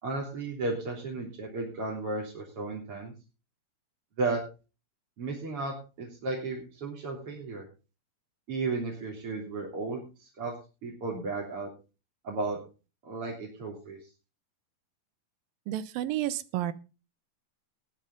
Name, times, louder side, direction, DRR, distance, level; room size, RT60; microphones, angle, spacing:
voice 1, 0.0-3.1 4.2-4.4 5.2-7.6 8.5-10.5 10.8-11.7 12.2-12.6 13.0-14.1, right 3 dB, 35° right, -2 dB, 3.9 m, -34 dB
voice 2, 15.7-16.7, right 13 dB, 75° right, 15 dB, 2.5 m, -31 dB
19.0 x 8.9 x 3.9 m, 0.32 s
omnidirectional pair, 4.5 m